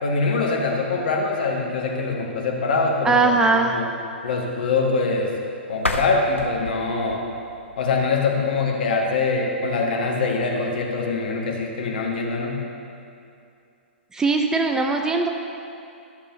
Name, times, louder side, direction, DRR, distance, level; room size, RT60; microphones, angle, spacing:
voice 1, 0.0-3.2 3.5-3.9 4.2-5.3 5.7-7.2 7.8-12.6, left 3 dB, 50° left, 0 dB, 1.4 m, -23 dB
voice 2, 3.0-3.8 14.1-15.3, right 3 dB, 10° right, 3 dB, 0.4 m, -20 dB
sound 1, 5.7-8.6, left 2 dB, 85° left, 0.7 m, -32 dB
13.0 x 6.8 x 3.1 m, 2.6 s
figure-of-eight pair, 115°, 7 cm